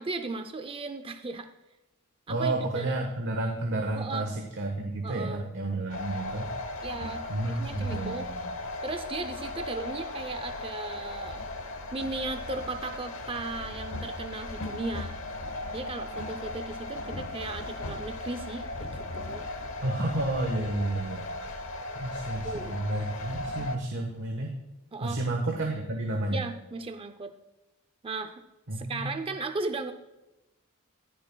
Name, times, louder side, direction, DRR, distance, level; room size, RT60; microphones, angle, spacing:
voice 1, 0.0-1.5 2.3-2.9 4.0-4.3 5.0-5.5 6.8-8.3 8.8-11.4 11.9-15.1 15.7-19.5 22.4-22.8 24.9-25.2 26.3-27.3 28.0-28.4 28.7-29.9, right 3 dB, 25° right, 8 dB, 0.5 m, -36 dB
voice 2, 2.3-6.5 7.3-8.5 19.8-21.3 21.9-24.5 25.0-26.4 28.7-29.1, right 2 dB, 60° right, 1 dB, 1.3 m, -31 dB
sound 1, 5.9-23.8, left 2 dB, 65° left, 1.0 m, -37 dB
21.0 x 7.2 x 2.3 m, 1.0 s
head